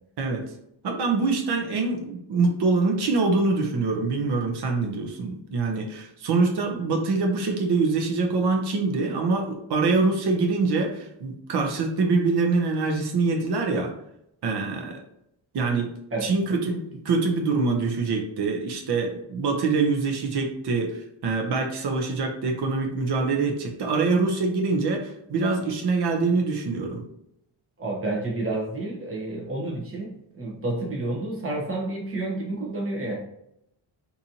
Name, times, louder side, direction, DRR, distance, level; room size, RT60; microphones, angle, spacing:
voice 1, 0.8-13.9 14.4-15.0 15.5-15.9 16.2-27.0, right 3 dB, 55° right, 2 dB, 0.7 m, -24 dB
voice 2, 27.8-33.2, right 2 dB, 25° right, -3 dB, 1.0 m, -30 dB
4.0 x 2.7 x 2.8 m, 0.79 s
wide cardioid pair, 135°, 49 cm